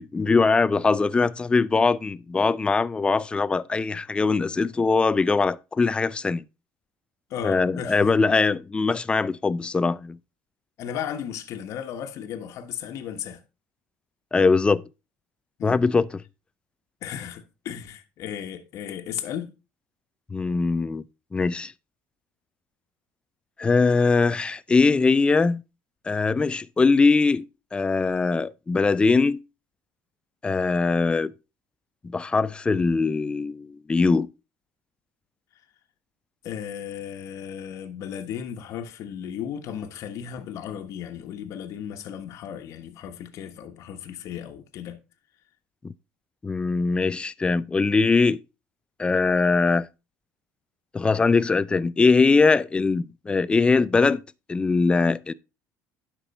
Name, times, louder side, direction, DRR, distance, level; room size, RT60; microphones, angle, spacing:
voice 1, 0.0-6.4 7.4-10.2 14.3-14.8 15.6-16.1 20.3-21.0 21.3-21.7 23.6-25.6 26.0-27.4 27.7-29.4 30.4-31.3 32.0-34.3 45.8-45.9 46.4-48.4 49.0-49.9 50.9-54.2 54.5-55.3, left 4 dB, 15° left, 0.4 m, -21 dB
voice 2, 7.3-8.1 10.8-13.4 15.6-15.8 17.0-19.5 36.4-45.0, left 9 dB, 60° left, 1.3 m, -35 dB
10.5 x 6.0 x 4.3 m
cardioid pair, 115°, 6 cm